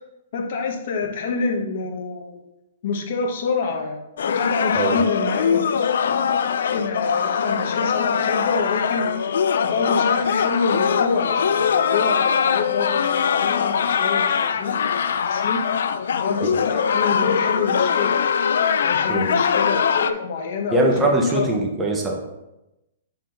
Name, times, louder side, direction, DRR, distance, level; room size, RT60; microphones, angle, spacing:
voice 1, 0.3-2.5 2.8-4.0 4.3-6.4 6.7-9.1 9.6-15.6 16.1-18.2 18.8-21.5, left 4 dB, 55° left, 2 dB, 1.2 m, -27 dB
sound 1, 4.2-20.1, left 7 dB, 75° left, 0.4 m, -22 dB
voice 2, 20.7-22.2, right 1 dB, 10° right, -1 dB, 1.0 m, -21 dB
7.4 x 4.5 x 3.9 m, 0.94 s
hypercardioid pair, 160°, 0 cm